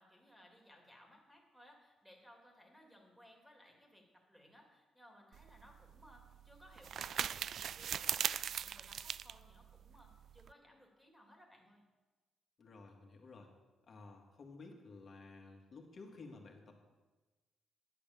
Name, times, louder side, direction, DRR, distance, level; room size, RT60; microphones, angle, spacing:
voice 1, 0.0-11.8, equal, 5° right, 0 dB, 3.2 m, -62 dB
sound 1, 5.3-10.5, right 8 dB, 65° right, 0.3 m, -40 dB
voice 2, 12.6-13.5 13.9-16.9, left 3 dB, 45° left, 2 dB, 2.2 m, -54 dB
11.0 x 8.5 x 7.1 m, 1.2 s
cardioid pair, 90°, 0 cm